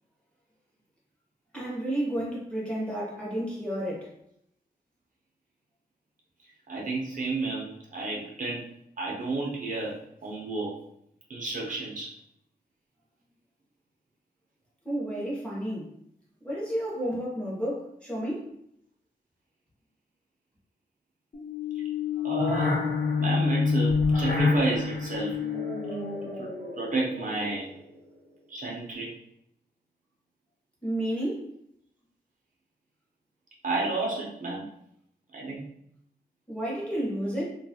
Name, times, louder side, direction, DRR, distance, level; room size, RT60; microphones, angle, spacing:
voice 1, 1.5-4.1 14.8-15.9 16.4-18.5 30.8-31.5 36.5-37.4, right 1 dB, 5° left, -6 dB, 0.8 m, -31 dB
voice 2, 6.7-8.6 9.0-10.7 11.3-12.1 22.2-22.7 23.2-25.4 26.4-26.5 26.8-27.7 28.5-29.1 33.6-34.6 35.3-35.6, right 3 dB, 50° right, -3 dB, 0.6 m, -31 dB
sound 1, 21.3-27.7, left 4 dB, 50° left, 1.0 m, -28 dB
2.6 x 2.3 x 2.8 m, 0.73 s
wide cardioid pair, 165°, 17 cm